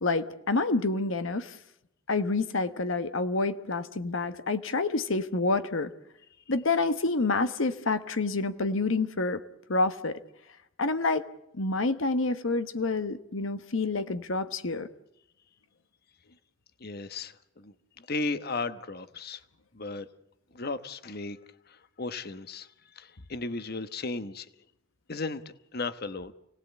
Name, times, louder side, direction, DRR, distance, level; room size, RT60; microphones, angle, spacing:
voice 1, 0.0-1.5 2.1-5.9 6.5-9.4 9.7-10.2 10.8-11.2 11.5-14.9, left 3 dB, 70° left, 11 dB, 1.1 m, -28 dB
voice 2, 16.8-19.4 19.7-20.1 20.5-21.4 21.7-24.5 25.1-26.3, left 3 dB, 50° left, 12 dB, 1.1 m, -35 dB
28.5 x 18.5 x 8.2 m, 0.85 s
head